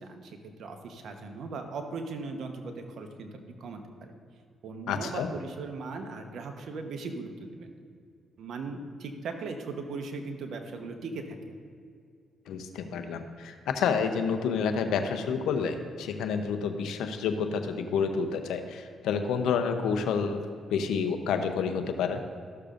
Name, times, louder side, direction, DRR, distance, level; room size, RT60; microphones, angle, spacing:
voice 1, 0.0-4.1 4.6-7.7 8.4-11.5, right 3 dB, 70° right, 5 dB, 1.0 m, -38 dB
voice 2, 4.9-5.3 12.5-20.4 20.7-22.2, left 6 dB, 85° left, 7 dB, 0.7 m, -29 dB
13.5 x 6.7 x 2.5 m, 2.2 s
cardioid pair, 70°, 0 cm